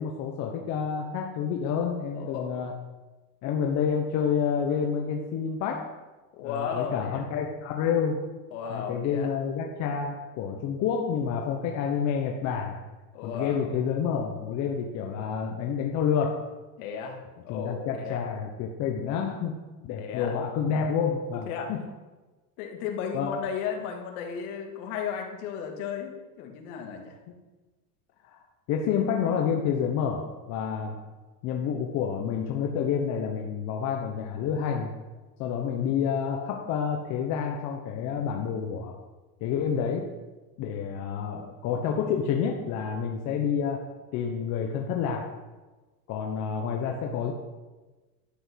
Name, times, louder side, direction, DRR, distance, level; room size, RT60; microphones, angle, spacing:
voice 1, 0.0-2.7 3.4-5.9 6.4-8.3 8.7-12.8 13.2-16.4 17.5-19.6 19.8-21.8 23.1-23.4 28.2-28.4 28.7-31.0 31.4-35.0 35.4-39.0 39.4-40.2 40.6-45.3 46.1-47.3, left 7 dB, 35° left, 1 dB, 1.1 m, -29 dB
voice 2, 2.1-2.6 6.3-7.3 8.5-9.3 13.1-13.7 16.8-18.2 20.0-20.4 21.3-21.7 22.6-27.2, left 7 dB, 60° left, 2 dB, 2.5 m, -35 dB
11.5 x 8.0 x 6.4 m, 1.2 s
supercardioid pair, 165°, 48 cm